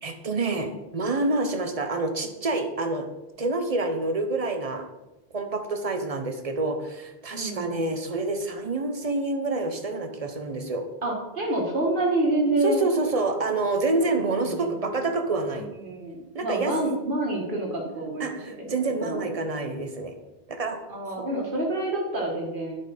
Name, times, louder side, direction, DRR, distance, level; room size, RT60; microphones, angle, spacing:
voice 1, 0.0-3.1 3.4-4.8 5.3-10.9 12.6-15.7 16.3-16.7 18.2-20.2 20.5-20.8 21.1-21.3, right 2 dB, 40° right, 6 dB, 0.9 m, -27 dB
voice 2, 7.3-7.9 11.0-12.8 14.0-14.7 15.5-19.3 20.9-22.8, right 2 dB, 55° right, -1 dB, 2.1 m, -28 dB
9.8 x 5.3 x 4.2 m, 1.0 s
omnidirectional pair, 1.1 m